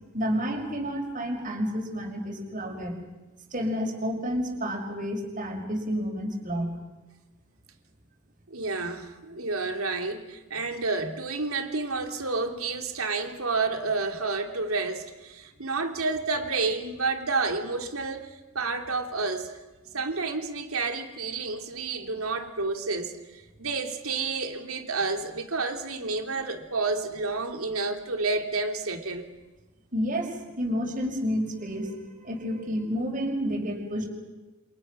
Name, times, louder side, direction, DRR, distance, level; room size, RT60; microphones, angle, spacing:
voice 1, 0.1-3.0 3.5-6.7 29.9-34.1, equal, 40° right, 2 dB, 5.5 m, -30 dB
voice 2, 8.5-19.6 19.9-29.2, right 3 dB, 75° right, 4 dB, 3.1 m, -30 dB
28.5 x 27.5 x 6.2 m, 1.1 s
head